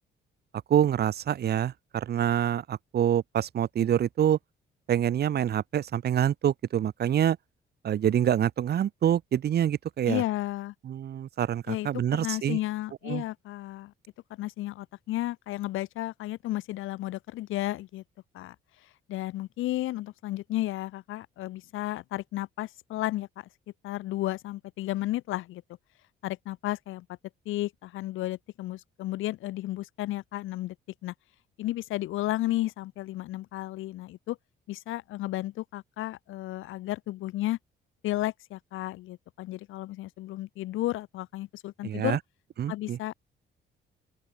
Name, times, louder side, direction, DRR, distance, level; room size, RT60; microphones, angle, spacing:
voice 1, 0.7-4.4 4.9-7.4 7.8-10.2 10.8-12.6 13.1-13.2 41.8-42.2 42.6-43.0, right 10 dB, 55° right, 0.8 m, -26 dB
voice 2, 10.1-10.7 11.7-13.9 14.3-18.0 18.3-18.6 19.1-23.5 23.8-25.6 26.2-27.1 27.5-30.8 31.0-31.1 31.6-34.4 34.7-37.6 38.0-42.2 42.7-43.1, left 16 dB, 90° left, 3.5 m, -33 dB
open air
cardioid pair, 90°, 20 cm